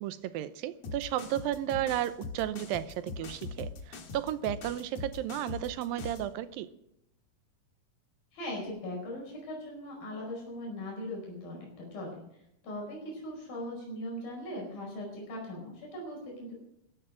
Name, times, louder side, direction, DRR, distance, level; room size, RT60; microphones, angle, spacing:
voice 1, 0.0-6.7, right 12 dB, 90° right, 14 dB, 2.6 m, -33 dB
sound 1, 0.8-6.3, left 4 dB, 55° left, 2.6 m, -42 dB
voice 2, 8.3-12.2 12.6-16.6, left 1 dB, 85° left, -1 dB, 6.7 m, -39 dB
16.5 x 13.0 x 6.3 m, 0.79 s
omnidirectional pair, 4.0 m